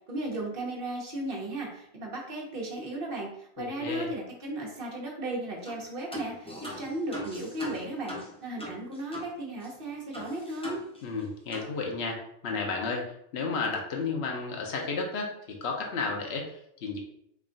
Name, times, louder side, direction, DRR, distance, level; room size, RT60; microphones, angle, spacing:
voice 1, 0.1-10.8, right 1 dB, 55° right, -1 dB, 1.1 m, -35 dB
voice 2, 3.6-4.1 11.0-13.0 13.3-15.3 15.6-17.0, left 4 dB, 80° left, 1 dB, 1.0 m, -32 dB
sound 1, 5.7-5.8 6.1-9.3 9.6-9.7 10.1-11.2 11.5-11.7, equal, 5° left, 0.7 m, -40 dB
3.6 x 2.3 x 3.7 m, 0.73 s
omnidirectional pair, 1.1 m